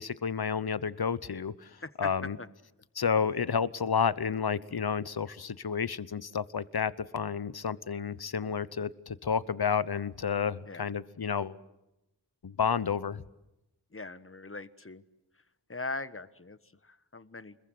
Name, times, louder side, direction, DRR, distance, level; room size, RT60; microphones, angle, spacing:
voice 1, 0.0-2.4 2.9-11.6 12.4-13.2, left 6 dB, 60° left, 17 dB, 1.0 m, -31 dB
voice 2, 13.9-15.0 15.7-17.6, left 3 dB, 30° left, 14 dB, 1.3 m, -41 dB
29.5 x 22.0 x 7.9 m, 0.91 s
wide cardioid pair, 70°, 42 cm